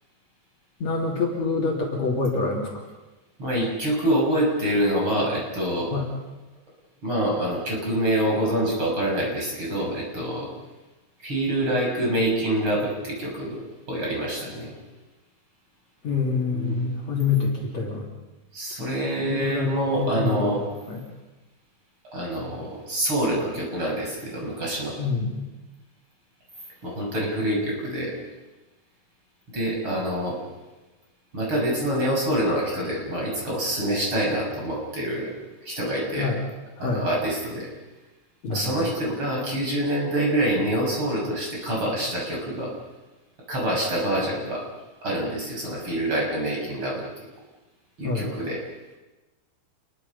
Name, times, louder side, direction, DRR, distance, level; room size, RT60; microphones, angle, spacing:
voice 1, 0.8-2.7 5.9-6.0 16.0-18.1 19.2-20.5 20.9-21.0 25.0-25.4 36.2-36.4 36.8-37.1 38.4-38.7 48.0-48.3, left 4 dB, 50° left, -2 dB, 4.0 m, -26 dB
voice 2, 3.4-5.9 7.0-10.5 11.2-13.6 13.9-14.7 16.5-16.8 18.5-20.6 22.1-25.0 26.8-28.1 29.5-30.4 31.3-35.3 35.6-36.3 36.8-37.7 38.5-42.7 43.5-44.6 45.0-47.0 48.0-48.6, right 1 dB, 35° right, -2 dB, 7.1 m, -26 dB
29.0 x 22.5 x 5.6 m, 1.1 s
omnidirectional pair, 4.3 m